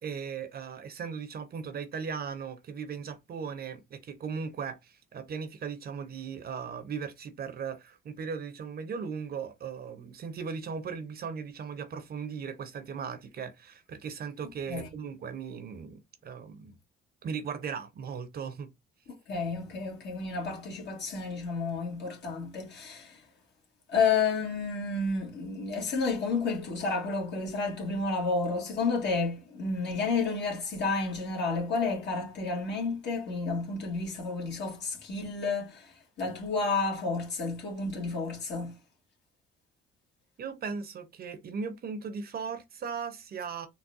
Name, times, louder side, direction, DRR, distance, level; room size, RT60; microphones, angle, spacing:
voice 1, 0.0-16.7 17.2-18.7 40.4-43.7, right 6 dB, 50° right, 0.7 m, -38 dB
voice 2, 19.3-23.2 23.9-38.7, left 4 dB, 60° left, 1.5 m, -31 dB
3.9 x 2.1 x 2.6 m
cardioid pair, 90°, 20 cm